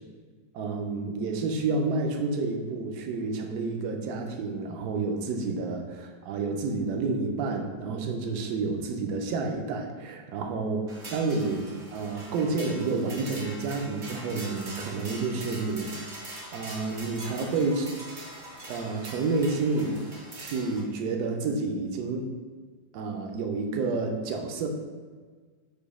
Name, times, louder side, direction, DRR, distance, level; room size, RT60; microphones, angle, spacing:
voice 1, 0.5-11.6 11.9-15.9 16.5-17.9 18.7-20.0 20.4-22.3 22.9-24.7, right 3 dB, 70° right, 3 dB, 0.9 m, -29 dB
sound 1, 10.9-20.8, right 1 dB, 50° right, 0.5 m, -42 dB
5.0 x 2.2 x 4.7 m, 1.5 s
omnidirectional pair, 2.1 m